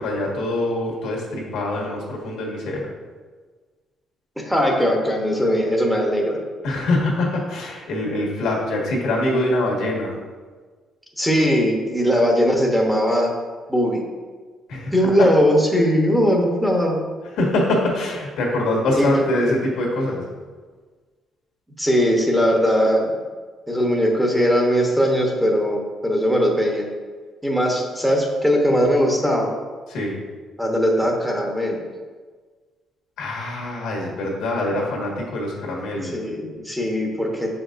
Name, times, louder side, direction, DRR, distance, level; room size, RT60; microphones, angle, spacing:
voice 1, 0.0-2.9 6.6-10.2 14.7-15.3 17.3-20.2 29.9-30.2 33.2-36.2, left 1 dB, 85° left, -2 dB, 1.6 m, -24 dB
voice 2, 4.4-6.4 11.2-13.3 13.7-14.0 14.9-17.0 19.0-19.2 21.8-23.2 23.7-26.9 27.4-29.5 30.6-31.8 35.9-37.5, equal, ahead, 0 dB, 1.0 m, -19 dB
7.1 x 5.1 x 2.6 m, 1.4 s
cardioid pair, 110°, 0 cm